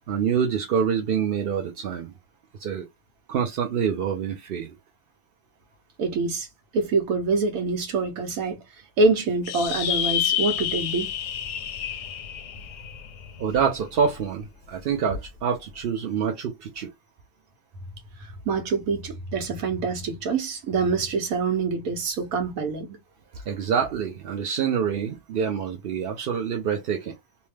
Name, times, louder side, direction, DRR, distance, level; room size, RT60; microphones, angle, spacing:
voice 1, 0.1-2.1 2.6-2.9 3.3-4.7 13.4-16.9 23.3-27.2, right 7 dB, 60° right, 0.6 m, -26 dB
voice 2, 6.0-6.5 6.7-8.6 9.0-11.1 18.2-23.0, right 3 dB, 80° right, 1.2 m, -25 dB
sound 1, 9.4-14.2, left 10 dB, 65° left, 0.8 m, -29 dB
2.8 x 2.2 x 3.1 m
omnidirectional pair, 1.5 m